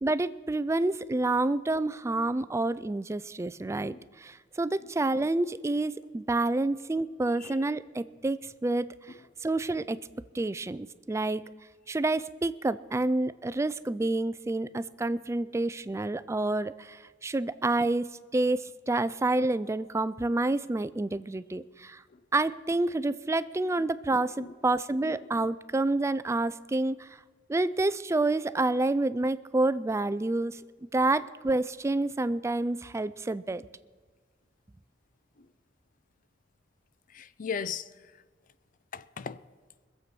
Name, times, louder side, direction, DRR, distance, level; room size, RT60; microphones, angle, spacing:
voice 1, 0.0-3.9 4.2-4.3 4.6-8.9 9.4-10.0 10.3-11.4 11.9-18.6 18.9-22.0 22.3-27.0 27.5-30.5 30.9-33.6, right 2 dB, 15° right, 0.3 m, -28 dB
voice 2, 37.1-37.9 38.9-39.4, left 6 dB, 45° left, 0.5 m, -38 dB
21.0 x 7.7 x 6.0 m
head